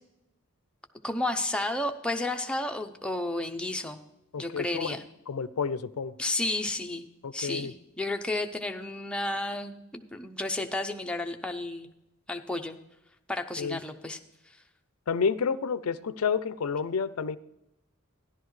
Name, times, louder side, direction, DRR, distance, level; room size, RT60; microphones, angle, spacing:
voice 1, 1.0-4.0 4.4-5.0 6.2-7.1 7.3-11.9 12.3-12.8 13.3-14.2, left 2 dB, 5° left, 4 dB, 0.6 m, -32 dB
voice 2, 4.3-5.0 5.3-6.1 7.2-7.7 13.6-13.8 15.1-17.4, left 5 dB, 80° left, 15 dB, 0.5 m, -30 dB
14.0 x 11.0 x 3.2 m, 0.89 s
head